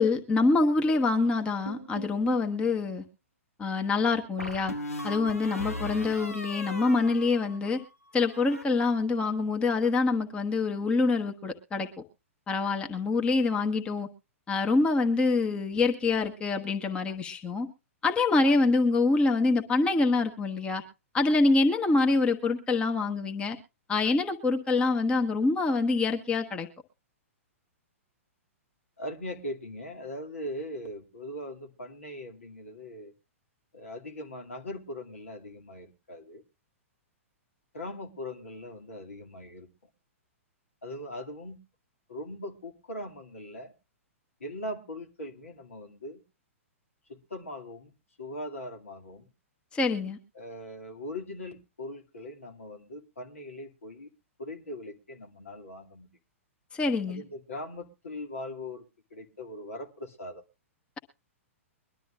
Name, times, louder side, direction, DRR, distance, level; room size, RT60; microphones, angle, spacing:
voice 1, 0.0-3.0 3.6-4.7 5.0-7.8 8.1-11.9 12.5-14.1 14.5-17.7 18.0-20.8 21.1-23.6 23.9-26.7 49.7-50.2 56.7-57.2, left 3 dB, 15° left, 1.1 m, -25 dB
sound 1, 1.7-2.5 4.4-7.9 8.2-8.7, equal, 85° left, 1.1 m, -38 dB
voice 2, 29.0-33.1 33.7-36.4 37.7-39.7 40.8-41.6 42.1-43.7 44.4-46.2 47.1-47.9 48.2-49.3 50.3-54.1 54.4-56.1 57.1-58.9 59.1-60.4, left 1 dB, 70° left, 2.4 m, -40 dB
22.5 x 12.0 x 2.4 m
figure-of-eight pair, 110°, 8 cm